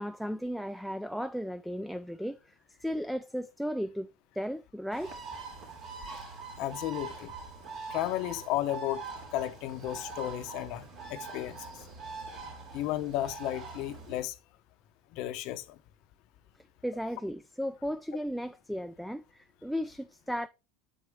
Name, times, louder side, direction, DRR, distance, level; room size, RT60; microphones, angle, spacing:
voice 1, 0.0-5.1 6.2-6.3 16.8-20.5, equal, ahead, 0.4 m, -35 dB
Bird, 4.9-14.2, right 4 dB, 55° right, 3.0 m, -43 dB
voice 2, 6.6-7.3 7.9-9.0 9.3-11.7 12.7-14.4 15.1-15.8, left 14 dB, 65° left, 0.7 m, -34 dB
7.2 x 4.5 x 3.5 m
supercardioid pair, 105°, 0 cm